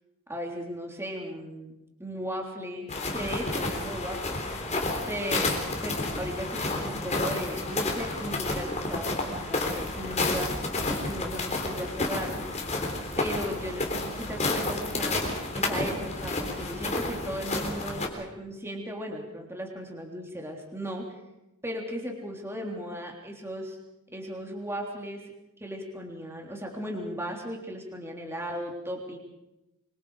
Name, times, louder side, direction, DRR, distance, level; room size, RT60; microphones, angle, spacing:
voice 1, 0.3-4.4 5.1-5.5 5.8-12.6 13.2-15.2 15.5-21.1 21.6-23.8 24.1-25.2 25.6-29.2, equal, 10° right, 0 dB, 3.4 m, -36 dB
sound 1, 2.9-18.1, left 2 dB, 30° left, 3.7 m, -30 dB
25.5 x 24.0 x 5.0 m, 0.94 s
head